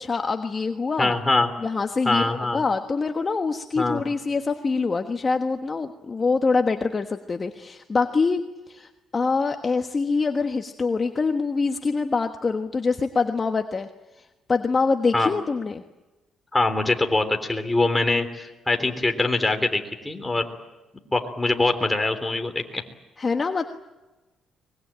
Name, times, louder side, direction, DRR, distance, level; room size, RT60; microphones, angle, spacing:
voice 1, 0.0-1.1 1.6-8.4 8.7-13.9 14.2-15.8 23.2-23.7, left 4 dB, 35° left, 6 dB, 1.3 m, -25 dB
voice 2, 1.0-1.5 2.0-2.6 3.8-4.0 15.1-15.3 16.5-20.5 21.1-22.8, left 2 dB, 15° left, 5 dB, 3.4 m, -23 dB
24.0 x 21.5 x 8.9 m, 1.1 s
cardioid pair, 90°, 0 cm